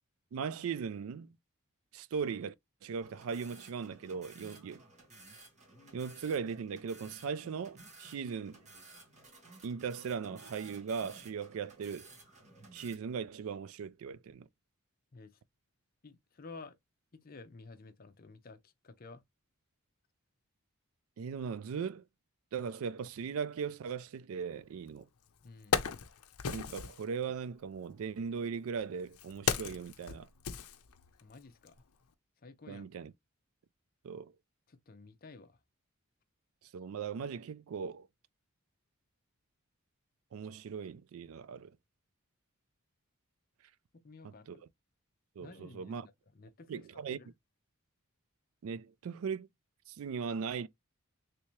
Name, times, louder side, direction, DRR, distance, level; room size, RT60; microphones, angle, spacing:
voice 1, 0.3-1.4 1.9-2.5 2.8-4.8 5.9-8.6 9.6-12.1 12.7-14.5 21.2-22.1 22.5-25.1 26.5-30.3 32.7-33.1 34.0-34.3 36.7-38.1 40.3-41.8 44.2-44.6 45.4-46.1 46.7-47.2 48.6-49.5 49.9-50.7, right 6 dB, 70° right, 0.3 m, -38 dB
sound 1, 3.0-12.9, right 2 dB, 30° right, 1.3 m, -55 dB
voice 2, 16.0-16.8 17.1-19.2 25.4-25.8 31.2-31.8 32.4-32.9 34.7-35.6 43.9-44.6 45.4-47.3, left 3 dB, 40° left, 0.6 m, -52 dB
Wood, 24.9-25.0 25.4-27.0 28.0-31.3 31.7-31.8, left 6 dB, 85° left, 0.5 m, -36 dB
3.4 x 2.8 x 3.0 m
head